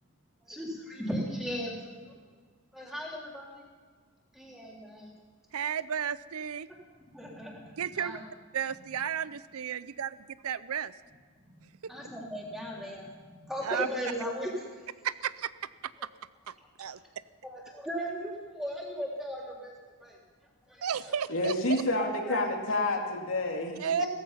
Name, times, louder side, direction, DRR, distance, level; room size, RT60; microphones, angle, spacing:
voice 1, 0.5-2.0 2.7-3.5 4.3-5.1 7.1-8.2 11.9-14.6 17.4-19.7 20.0-20.2 20.7-20.8 22.0-22.4 24.0-24.1, equal, ahead, -3 dB, 3.3 m, -37 dB
voice 2, 5.5-6.7 7.8-8.2 8.5-10.9 11.8-11.9 13.6-13.9 15.0-15.5 15.8-15.9 16.5-17.0 20.8-21.5 23.8-24.0, right 8 dB, 85° right, 16 dB, 0.5 m, -33 dB
voice 3, 21.3-24.1, left 2 dB, 70° left, 1 dB, 2.6 m, -29 dB
17.0 x 14.5 x 5.7 m, 1.5 s
head